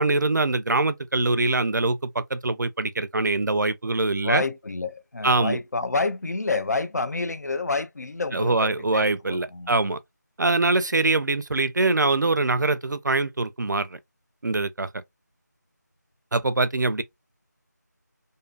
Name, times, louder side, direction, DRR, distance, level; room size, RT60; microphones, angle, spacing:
voice 1, 0.0-4.4 5.2-5.6 8.3-10.0 10.4-13.9 14.4-14.9 16.3-17.0, right 3 dB, 75° right, 0.4 m, -23 dB
voice 2, 4.2-9.7, left 3 dB, 60° left, 0.4 m, -28 dB
2.6 x 2.4 x 2.2 m
figure-of-eight pair, 175°, 10 cm